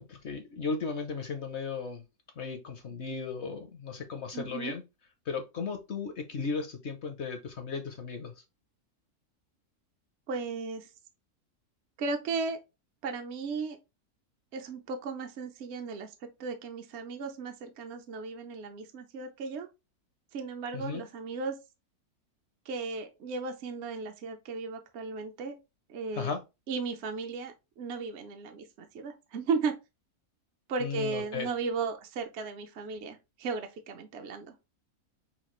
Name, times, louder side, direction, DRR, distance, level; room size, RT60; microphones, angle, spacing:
voice 1, 0.0-2.0 2.4-4.8 5.3-8.3 20.7-21.0 26.1-26.4 30.8-31.5, left 5 dB, 60° left, 0.8 m, -35 dB
voice 2, 4.3-4.7 10.3-10.9 12.0-12.6 13.0-13.8 14.5-16.1 16.4-19.7 20.3-21.6 22.7-25.6 25.9-26.3 26.7-29.8 30.7-34.5, right 4 dB, 60° right, 0.8 m, -35 dB
5.7 x 2.4 x 3.0 m
omnidirectional pair, 1.6 m